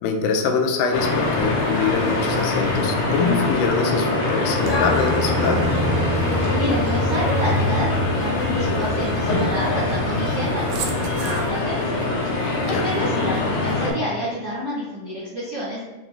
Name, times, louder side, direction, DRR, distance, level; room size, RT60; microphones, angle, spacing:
voice 1, 0.0-5.6 12.7-12.8, left 5 dB, 85° left, 3 dB, 2.1 m, -24 dB
sound 1, 0.9-13.9, left 2 dB, 65° left, 1.9 m, -23 dB
Aircraft, 4.7-11.5, right 2 dB, 75° right, 1.7 m, -29 dB
voice 2, 6.3-12.0 12.3-15.8, equal, 55° right, -9 dB, 1.1 m, -29 dB
5.8 x 2.5 x 3.3 m, 1.2 s
omnidirectional pair, 3.5 m